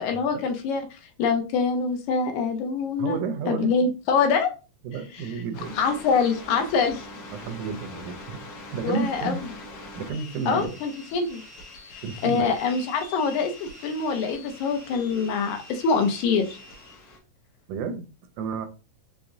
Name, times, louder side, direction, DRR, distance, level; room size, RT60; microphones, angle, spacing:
voice 1, 0.0-3.2 3.5-4.5 5.8-7.1 8.8-9.4 10.5-11.4 12.2-16.6, left 5 dB, 75° left, 2.0 m, -25 dB
voice 2, 3.0-3.7 4.8-5.8 7.3-8.4 8.7-9.4 10.0-10.8 12.0-12.5 17.7-18.1 18.4-18.7, right 5 dB, 80° right, 2.0 m, -31 dB
sound 1, 5.5-17.2, left 2 dB, 60° left, 1.9 m, -43 dB
5.8 x 3.5 x 2.6 m
omnidirectional pair, 3.6 m